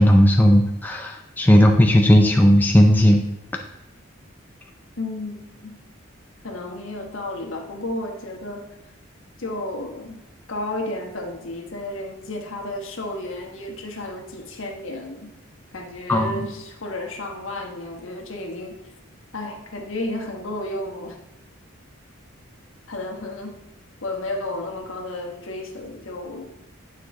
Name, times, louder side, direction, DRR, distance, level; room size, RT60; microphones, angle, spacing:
voice 1, 0.0-3.2 16.1-16.4, equal, 10° left, 2 dB, 0.4 m, -15 dB
voice 2, 5.0-5.3 5.6-5.8 6.4-8.6 9.4-10.2 10.5-15.3 15.7-18.8 19.3-21.2 22.9-23.6 24.0-26.5, left 2 dB, 70° left, 2 dB, 1.2 m, -32 dB
9.2 x 4.7 x 3.7 m, 0.93 s
head